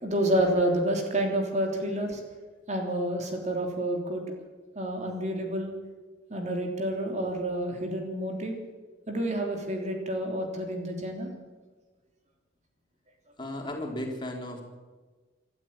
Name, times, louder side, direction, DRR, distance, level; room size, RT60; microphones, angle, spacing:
voice 1, 0.0-2.2 2.7-4.2 4.7-5.7 6.3-8.6 9.1-11.3, right 1 dB, 40° right, 3 dB, 3.4 m, -29 dB
voice 2, 13.4-14.6, left 1 dB, 25° left, 1 dB, 4.1 m, -35 dB
26.0 x 13.0 x 8.9 m, 1.3 s
head